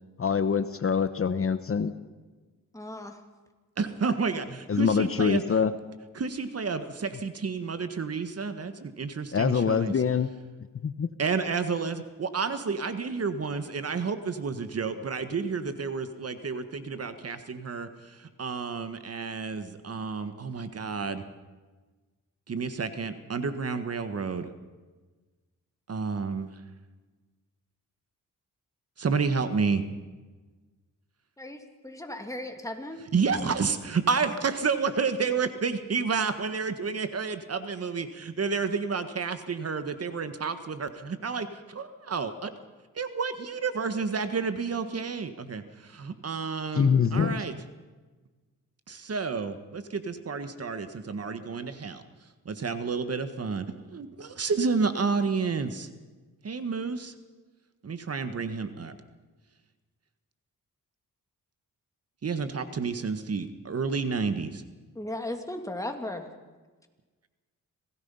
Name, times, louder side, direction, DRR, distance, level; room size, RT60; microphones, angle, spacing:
voice 1, 0.2-1.9 4.7-5.7 9.3-10.3 10.8-11.1 46.7-47.4, left 6 dB, 40° left, 11 dB, 1.0 m, -24 dB
voice 2, 2.7-3.2 31.4-33.1 64.9-66.3, left 1 dB, 10° left, 4 dB, 2.7 m, -36 dB
voice 3, 3.8-5.4 6.1-9.9 11.2-21.3 22.5-24.5 25.9-26.5 29.0-29.8 33.1-42.5 43.0-47.5 48.9-52.0 52.5-55.9 56.4-57.1 57.8-59.0 62.2-64.6, right 5 dB, 45° right, 10 dB, 1.6 m, -30 dB
26.5 x 18.0 x 5.6 m, 1.3 s
cardioid pair, 85°, 33 cm